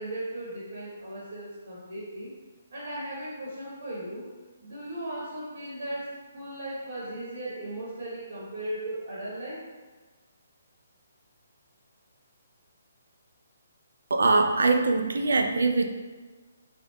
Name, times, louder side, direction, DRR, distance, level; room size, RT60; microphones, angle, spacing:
voice 1, 0.0-2.3 2.7-4.3 4.6-9.6, right 1 dB, 60° right, -7 dB, 1.0 m, -37 dB
voice 2, 14.1-15.9, right 3 dB, 85° right, 5 dB, 0.4 m, -22 dB
3.5 x 2.4 x 3.0 m, 1.3 s
hypercardioid pair, 165°, 0 cm